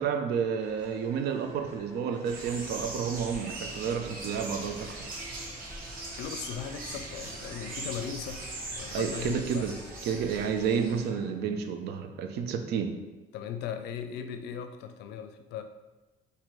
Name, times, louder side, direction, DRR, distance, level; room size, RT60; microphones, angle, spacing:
voice 1, 0.0-5.1 8.9-9.8 10.0-13.0, right 7 dB, 75° right, 7 dB, 0.5 m, -30 dB
sound 1, 0.6-11.3, left 1 dB, 15° left, 1.3 m, -52 dB
sound 2, 2.2-11.1, right 2 dB, 55° right, 1.1 m, -40 dB
voice 2, 6.1-9.8 13.3-15.6, left 8 dB, 80° left, 9 dB, 0.4 m, -38 dB
5.9 x 2.8 x 3.0 m, 1.1 s
cardioid pair, 110°, 17 cm